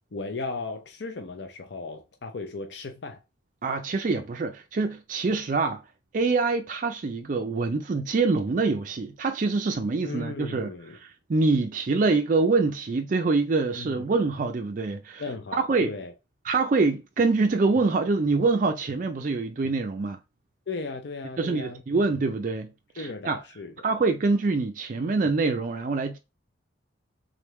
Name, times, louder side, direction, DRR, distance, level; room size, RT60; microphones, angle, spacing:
voice 1, 0.1-3.2 10.0-11.0 13.8-14.1 15.2-16.1 20.7-21.8 23.0-23.7, left 3 dB, 60° left, 0.6 m, -36 dB
voice 2, 3.6-5.8 6.1-15.2 15.5-15.9 16.4-20.2 21.4-22.7 23.0-23.4 23.8-26.2, right 3 dB, 40° right, 0.4 m, -25 dB
3.7 x 3.4 x 3.0 m
head